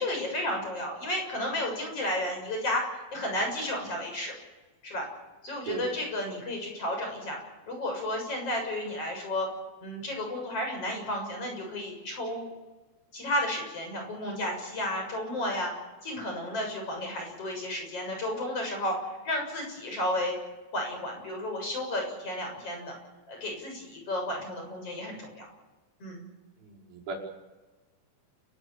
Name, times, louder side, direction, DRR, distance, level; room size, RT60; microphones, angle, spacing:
voice 1, 0.0-4.3 4.8-5.0 5.4-7.4 7.7-9.5 9.8-12.5 13.1-15.7 16.0-19.0 19.2-20.3 20.7-22.9 23.3-25.5 26.0-26.3, left 1 dB, 30° left, 2 dB, 7.8 m, -32 dB
voice 2, 26.6-27.1, right 4 dB, 55° right, -3 dB, 7.4 m, -36 dB
29.5 x 18.0 x 7.4 m, 1.2 s
omnidirectional pair, 5.1 m